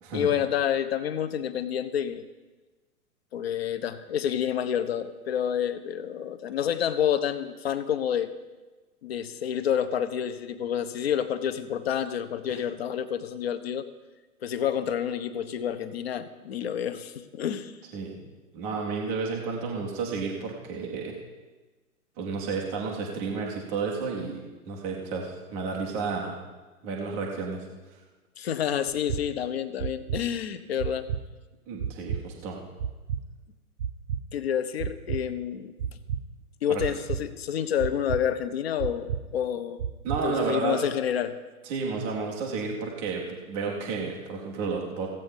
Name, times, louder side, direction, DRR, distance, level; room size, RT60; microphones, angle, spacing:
voice 1, 0.1-2.2 3.3-8.3 9.0-13.8 14.4-17.7 28.4-31.1 34.3-35.7 36.6-39.8 40.2-41.3, left 9 dB, 40° left, 12 dB, 0.8 m, -29 dB
voice 2, 18.5-21.1 22.2-26.4 26.8-27.6 31.7-32.6 36.7-36.8 40.0-40.8 41.7-45.1, right 4 dB, 5° right, -1 dB, 0.4 m, -31 dB
sound 1, 28.9-29.2 29.8-30.2 30.8-31.2 31.8-32.2 32.8-33.2 33.8-34.2 34.8-35.2 35.8-36.2 36.8-37.2 37.8-38.2 38.8-39.2 39.8-40.2, right 8 dB, 40° right, 0.7 m, -30 dB
15.5 x 7.9 x 5.4 m, 1.2 s
figure-of-eight pair, 115°, 45 cm